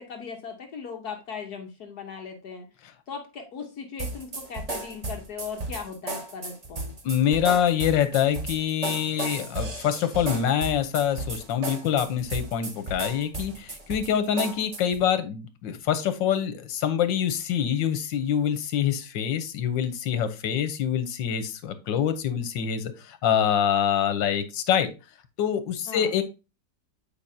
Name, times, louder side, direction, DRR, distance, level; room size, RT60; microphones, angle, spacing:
voice 1, 0.0-2.7 3.1-6.9 25.9-26.1, left 6 dB, 60° left, 4 dB, 1.4 m, -38 dB
sound 1, 4.0-15.0, right 2 dB, 30° right, 0.8 m, -34 dB
voice 2, 7.0-24.9 25.4-26.2, left 9 dB, 85° left, 11 dB, 1.5 m, -25 dB
8.7 x 4.9 x 2.7 m, 0.29 s
omnidirectional pair, 2.0 m